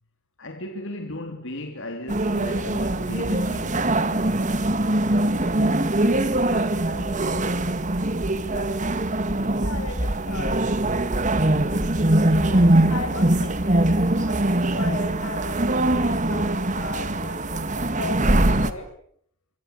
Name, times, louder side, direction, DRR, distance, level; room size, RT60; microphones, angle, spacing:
voice 1, 0.4-4.5 4.8-5.0 5.4-7.7 11.3-11.7, left 1 dB, 60° left, 3.4 m, -38 dB
sound 1, 2.1-18.7, right 1 dB, 35° right, 1.9 m, -22 dB
voice 2, 9.6-10.6 11.7-11.8 12.2-18.9, left 2 dB, 85° left, 7.7 m, -37 dB
26.0 x 26.0 x 8.5 m
head